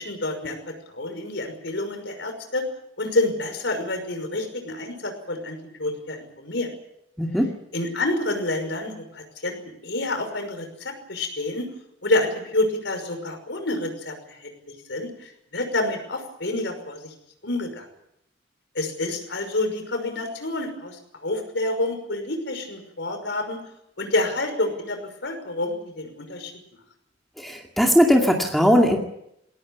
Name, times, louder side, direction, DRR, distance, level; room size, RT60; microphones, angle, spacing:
voice 1, 0.0-2.6 3.0-6.7 7.7-9.6 9.8-11.7 12.0-14.5 14.9-17.1 17.4-17.9 18.7-23.6 24.0-26.5, left 2 dB, 70° left, 6 dB, 5.8 m, -28 dB
voice 2, 7.2-7.5 27.4-29.0, equal, ahead, 1 dB, 2.3 m, -19 dB
22.0 x 17.5 x 9.6 m, 0.78 s
head